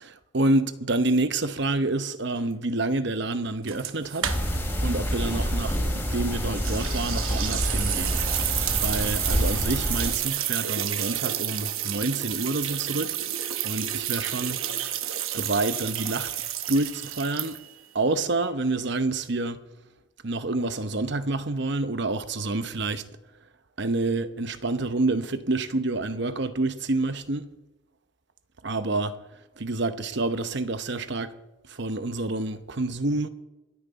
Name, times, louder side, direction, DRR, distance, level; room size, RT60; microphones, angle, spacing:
voice 1, 0.0-4.3 4.8-5.8 6.1-8.2 8.8-13.1 13.6-14.6 15.3-16.3 16.7-17.6 17.9-19.6 20.2-23.0 23.8-27.5 28.6-29.1 29.6-31.3 31.7-33.3, right 2 dB, 55° right, 0.9 m, -28 dB
sound 1, 3.7-4.8 5.1-5.2 6.6-17.9, right 12 dB, 75° right, 1.0 m, -30 dB
sound 2, 4.2-10.1, equal, 10° left, 3.2 m, -27 dB
26.5 x 9.3 x 4.1 m
head